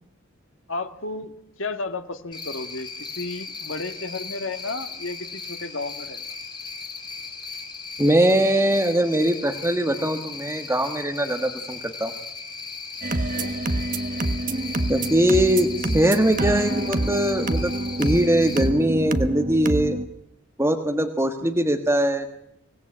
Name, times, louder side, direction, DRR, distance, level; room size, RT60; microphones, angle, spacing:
voice 1, 0.7-1.3 1.6-6.2 13.3-13.5 21.4-21.5, left 3 dB, 65° left, 8 dB, 1.9 m, -33 dB
Cricket, 2.3-18.7, left 4 dB, 20° left, 3.6 m, -37 dB
voice 2, 8.0-12.1 14.9-17.7 18.0-20.0 20.6-22.3, right 1 dB, 10° right, 5 dB, 1.5 m, -21 dB
sound 1, 13.0-20.1, right 1 dB, 40° right, 1.3 m, -26 dB
25.0 x 18.0 x 8.8 m, 0.79 s
head